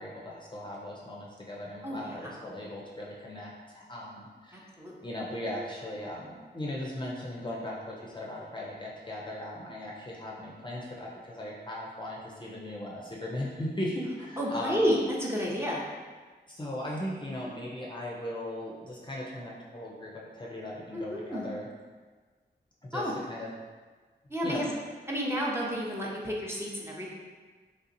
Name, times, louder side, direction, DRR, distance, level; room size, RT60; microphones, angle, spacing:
voice 1, 0.0-4.7 5.0-14.8 16.5-21.7 22.8-23.5 24.4-24.7, left 1 dB, 25° left, -4 dB, 0.5 m, -38 dB
voice 2, 1.8-2.3 4.5-5.0 14.4-15.8 20.9-21.5 22.9-23.1 24.3-24.7 25.1-27.1, equal, 15° right, -4 dB, 0.6 m, -31 dB
3.3 x 2.7 x 2.6 m, 1.4 s
cardioid pair, 60°, 18 cm